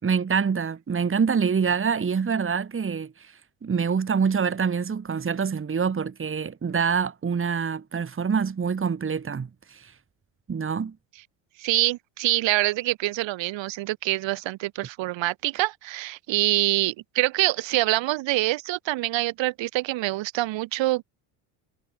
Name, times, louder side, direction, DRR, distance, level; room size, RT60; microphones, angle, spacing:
voice 1, 0.0-9.9 10.5-11.0, right 6 dB, 25° right, 3.0 m, -26 dB
voice 2, 11.6-21.0, right 18 dB, 60° right, 4.4 m, -25 dB
supercardioid pair, 90°, 49 cm